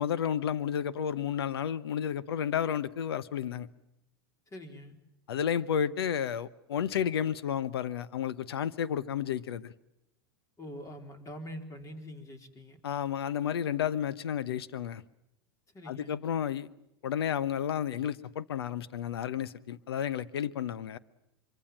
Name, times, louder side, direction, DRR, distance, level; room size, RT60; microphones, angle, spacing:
voice 1, 0.0-3.7 5.3-9.7 12.8-15.0 15.9-16.7 17.0-21.0, left 9 dB, 80° left, 1.1 m, -32 dB
voice 2, 4.5-5.0 10.6-12.8 15.7-16.2, equal, 25° left, 4.1 m, -44 dB
24.5 x 24.5 x 7.4 m
hypercardioid pair, 100°, 13 cm